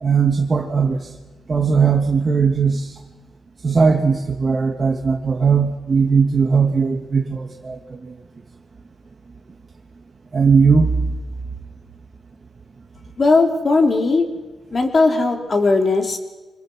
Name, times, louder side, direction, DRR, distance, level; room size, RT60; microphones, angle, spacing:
voice 1, 0.0-1.1 1.5-3.0 3.6-8.1 10.3-10.9, right 5 dB, 35° right, 1 dB, 1.9 m, -18 dB
voice 2, 13.2-14.3 14.7-16.2, left 3 dB, 35° left, 3 dB, 3.5 m, -17 dB
27.5 x 26.5 x 6.4 m, 1.2 s
wide cardioid pair, 140°, 0 cm